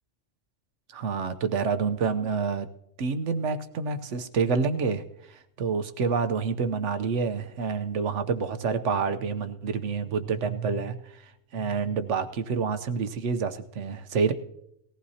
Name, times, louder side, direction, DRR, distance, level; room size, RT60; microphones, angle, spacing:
voice 1, 0.9-2.7 3.0-14.3, right 5 dB, 75° right, 10 dB, 1.1 m, -28 dB
19.5 x 15.0 x 2.8 m, 0.79 s
omnidirectional pair, 1.2 m